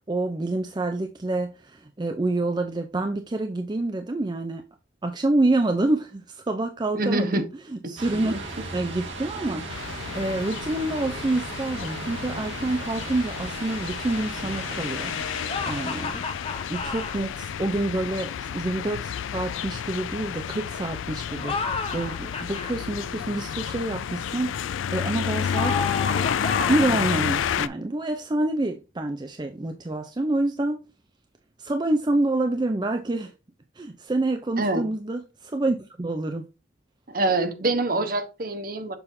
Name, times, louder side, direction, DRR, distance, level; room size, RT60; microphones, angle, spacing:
voice 1, 0.0-4.6 5.0-8.3 8.7-16.2 16.7-25.8 26.7-30.8 31.6-33.3 33.8-36.4, right 2 dB, 20° right, 0.4 m, -27 dB
voice 2, 6.9-7.4 8.2-8.4 34.6-34.9 37.1-39.0, right 2 dB, 50° right, 0.9 m, -25 dB
sound 1, 8.0-16.0, right 2 dB, 75° right, 1.7 m, -37 dB
sound 2, 9.7-27.7, left 8 dB, 85° left, 0.4 m, -30 dB
sound 3, 15.5-17.2 21.3-22.7 25.5-27.0, left 4 dB, 30° left, 0.7 m, -31 dB
6.8 x 5.5 x 2.6 m
head